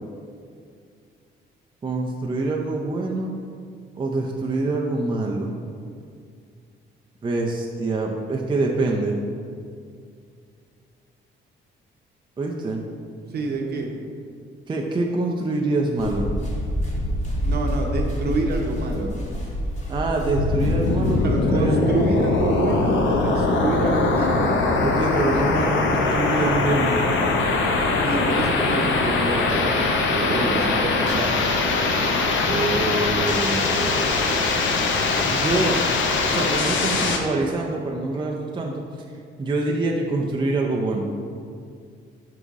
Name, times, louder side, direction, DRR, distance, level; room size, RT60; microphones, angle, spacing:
voice 1, 1.8-3.3 4.0-5.5 7.2-9.2 12.4-12.9 14.7-16.3 19.9-21.7 24.8-27.0 32.4-34.5 35.3-35.8 36.3-38.8 39.4-41.1, right 2 dB, 25° right, -1 dB, 0.5 m, -25 dB
voice 2, 13.3-13.9 17.4-19.1 21.2-24.5 28.0-31.4, right 2 dB, 55° right, 1 dB, 0.9 m, -27 dB
sound 1, 16.0-21.4, equal, 35° left, 1.4 m, -27 dB
sound 2, 20.2-37.2, left 3 dB, 70° left, 0.7 m, -22 dB
5.4 x 4.9 x 3.6 m, 2.3 s
cardioid pair, 90°, 20 cm